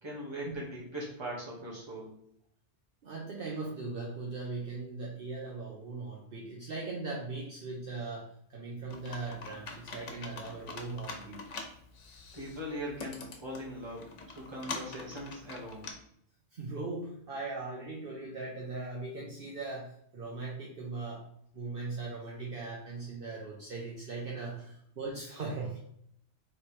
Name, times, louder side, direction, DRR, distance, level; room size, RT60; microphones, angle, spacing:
voice 1, 0.0-2.1 12.3-15.9, equal, 25° right, -5 dB, 1.3 m, -40 dB
voice 2, 3.0-11.4 16.5-21.2 21.5-25.8, right 3 dB, 55° right, -3 dB, 0.9 m, -39 dB
Computer keyboard, 8.9-15.9, left 4 dB, 85° left, 1.1 m, -45 dB
3.2 x 3.2 x 4.3 m, 0.69 s
omnidirectional pair, 1.2 m